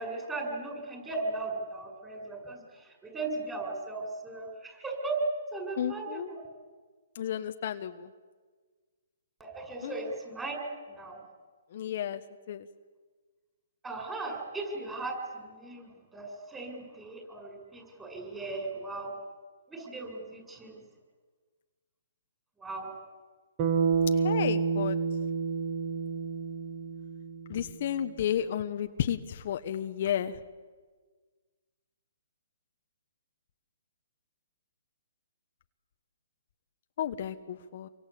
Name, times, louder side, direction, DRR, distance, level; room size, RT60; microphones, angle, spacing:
voice 1, 0.0-5.2 5.5-6.4 9.4-10.6 10.9-11.2 13.8-19.1 19.7-20.8 22.6-22.9, right 3 dB, 10° right, 2 dB, 7.1 m, -37 dB
voice 2, 5.8-6.3 7.1-8.1 9.8-10.1 11.7-12.2 12.5-12.7 24.1-25.0 27.5-30.4 37.0-37.9, left 10 dB, 50° left, 7 dB, 1.3 m, -32 dB
Bass guitar, 23.6-28.0, right 5 dB, 30° right, 4.3 m, -29 dB
27.5 x 24.5 x 8.5 m, 1.4 s
hypercardioid pair, 145°, 0 cm